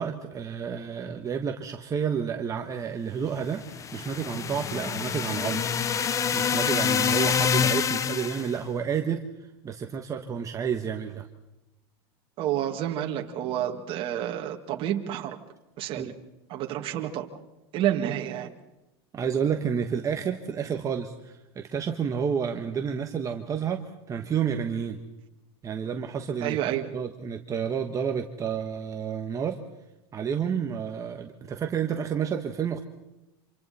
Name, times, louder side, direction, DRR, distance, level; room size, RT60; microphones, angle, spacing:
voice 1, 0.0-5.6 6.3-9.2 9.6-11.3 16.0-16.1 19.1-25.0 25.6-26.6 26.9-29.6 30.1-32.8, right 7 dB, 25° right, 4 dB, 1.4 m, -30 dB
sound 1, 3.6-8.5, left 7 dB, 25° left, 0.8 m, -26 dB
voice 2, 12.4-15.4 15.8-16.1 16.5-17.3 17.7-18.5 26.4-26.9, right 11 dB, 40° right, 2 dB, 2.1 m, -29 dB
28.5 x 26.5 x 4.3 m, 0.97 s
supercardioid pair, 125°, 13 cm